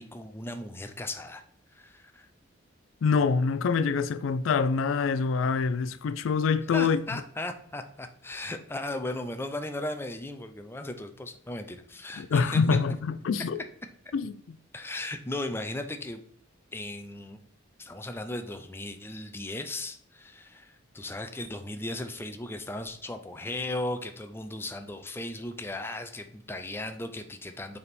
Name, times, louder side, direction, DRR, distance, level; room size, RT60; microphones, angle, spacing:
voice 1, 0.0-1.4 1.7-2.3 6.7-12.6 14.7-16.2 16.7-17.4 17.8-27.8, left 1 dB, 10° left, 0.4 m, -36 dB
voice 2, 3.0-7.2 12.2-13.6 14.1-14.6, left 5 dB, 75° left, 0.4 m, -26 dB
6.7 x 3.5 x 4.1 m
head